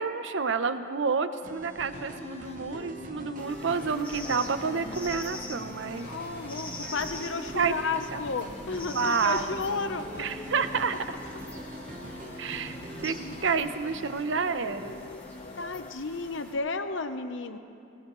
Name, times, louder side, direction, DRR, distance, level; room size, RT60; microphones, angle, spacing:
voice 1, 0.0-6.1 7.6-7.7 8.1-8.2 8.9-9.5 10.2-11.0 12.4-12.8 13.0-13.1 13.4-15.0, right 5 dB, 70° right, 11 dB, 0.7 m, -29 dB
sound 1, 1.4-13.6, right 1 dB, 40° right, 1.0 m, -43 dB
sound 2, 1.9-15.9, left 3 dB, 30° left, 0.3 m, -45 dB
sound 3, 3.4-16.5, left 1 dB, 10° left, 1.8 m, -45 dB
voice 2, 6.0-10.3 12.0-12.5 13.2-13.7 15.6-17.6, left 4 dB, 75° left, 9 dB, 0.8 m, -33 dB
20.0 x 18.5 x 3.1 m, 2.6 s
head